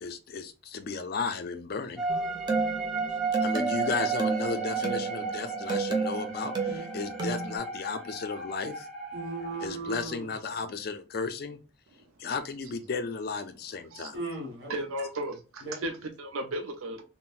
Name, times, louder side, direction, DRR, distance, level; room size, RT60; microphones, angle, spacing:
voice 1, 0.0-2.0 3.4-8.9 9.6-11.6 12.2-14.2, left 4 dB, 45° left, 0.4 m, -34 dB
sound 1, 2.0-9.7, right 4 dB, ahead, 0.8 m, -34 dB
sound 2, 2.1-7.6, right 4 dB, 20° right, 0.4 m, -32 dB
voice 2, 9.1-10.3 14.1-14.7 15.6-15.8, right 2 dB, 60° right, 1.4 m, -37 dB
voice 3, 14.7-17.0, right 1 dB, 85° right, 0.5 m, -35 dB
3.8 x 2.1 x 2.4 m
head